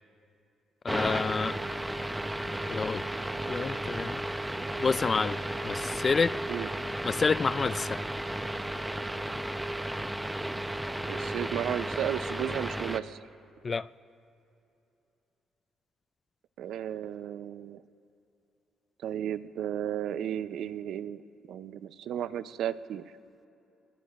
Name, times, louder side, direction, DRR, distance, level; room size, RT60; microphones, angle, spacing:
voice 1, 0.8-1.6 2.6-3.0 3.5-4.2 4.8-6.4 7.0-8.0 13.6-13.9, left 4 dB, 35° left, 0.3 m, -28 dB
sound 1, 0.9-13.0, right 1 dB, 10° right, 0.7 m, -34 dB
voice 2, 11.1-13.2 16.6-17.8 19.0-21.2 21.5-23.0, right 10 dB, 75° right, 0.6 m, -34 dB
25.0 x 21.0 x 2.5 m
cardioid pair, 90°, 0 cm